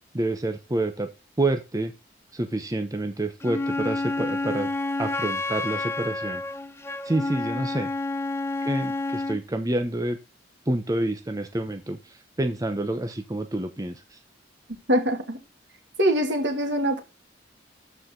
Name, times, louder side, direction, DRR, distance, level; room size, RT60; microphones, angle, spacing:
voice 1, 0.1-1.1 1.4-1.9 2.3-4.7 5.0-6.4 7.0-7.9 8.6-10.2 10.7-14.2, right 1 dB, 20° right, 0.9 m, -28 dB
Wind instrument woodwind instrument, 3.4-9.4, left 2 dB, 15° left, 0.6 m, -29 dB
voice 2, 14.9-15.4 16.0-17.0, equal, 70° right, 2.6 m, -23 dB
13.0 x 4.8 x 3.9 m
head